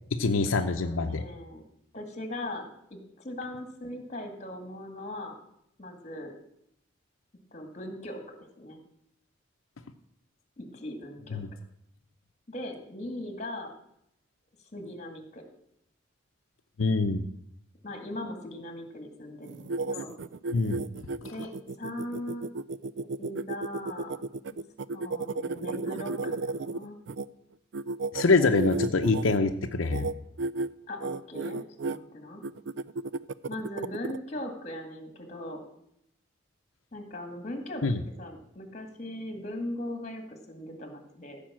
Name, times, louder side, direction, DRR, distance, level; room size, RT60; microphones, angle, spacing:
voice 1, 0.2-1.2 11.3-11.5 16.8-17.2 20.5-20.8 28.1-30.1 37.8-38.0, left 3 dB, 85° left, 5 dB, 0.7 m, -25 dB
voice 2, 0.7-1.6 1.9-5.4 5.8-6.3 7.5-8.8 10.6-11.4 12.5-13.7 14.7-15.4 17.8-20.1 21.3-21.5 21.8-22.5 23.2-24.2 24.9-27.0 30.9-32.4 33.5-35.6 36.9-37.8 38.2-41.4, left 1 dB, 35° left, 4 dB, 2.0 m, -39 dB
sound 1, 19.4-27.2 27.7-29.4 29.8-30.1 30.4-30.7 31.0-32.0 32.4-34.2, right 3 dB, 60° right, 0.4 m, -33 dB
15.0 x 5.3 x 7.4 m, 0.77 s
head